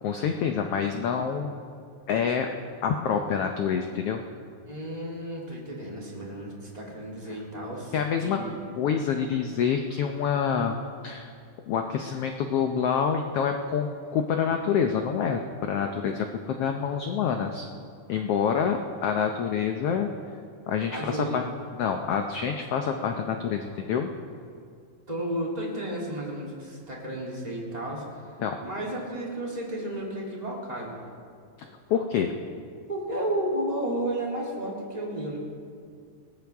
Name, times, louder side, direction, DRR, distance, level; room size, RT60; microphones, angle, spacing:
voice 1, 0.0-1.6 2.1-2.5 2.8-4.2 7.3-7.4 7.9-8.4 8.8-10.8 11.0-11.3 11.7-17.7 18.1-20.1 20.7-21.4 21.8-24.1 28.4-28.6 31.6-32.3, left 7 dB, 90° left, 4 dB, 1.3 m, -27 dB
voice 2, 4.7-7.9 8.2-8.7 20.9-21.4 25.1-28.0 28.6-31.0 32.9-35.4, right 1 dB, 15° right, -4 dB, 2.8 m, -32 dB
20.5 x 18.5 x 3.5 m, 2.3 s
omnidirectional pair, 3.7 m